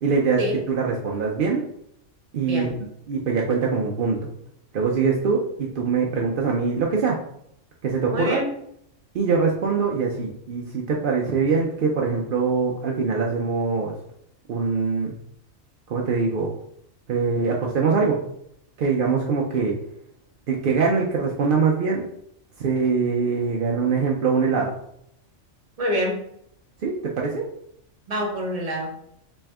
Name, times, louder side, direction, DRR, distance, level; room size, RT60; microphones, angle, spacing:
voice 1, 0.0-0.4 0.7-1.6 2.3-2.7 3.1-4.3 4.7-7.2 7.8-8.4 9.1-14.0 14.5-15.1 15.9-16.5 17.1-18.2 18.8-19.7 20.5-22.0 22.6-24.7 26.8-27.4, right 5 dB, 65° right, -1 dB, 0.5 m, -23 dB
voice 2, 8.1-8.5 25.8-26.2 28.1-29.0, equal, 35° right, 0 dB, 0.8 m, -26 dB
3.5 x 3.1 x 3.3 m, 0.73 s
omnidirectional pair, 1.4 m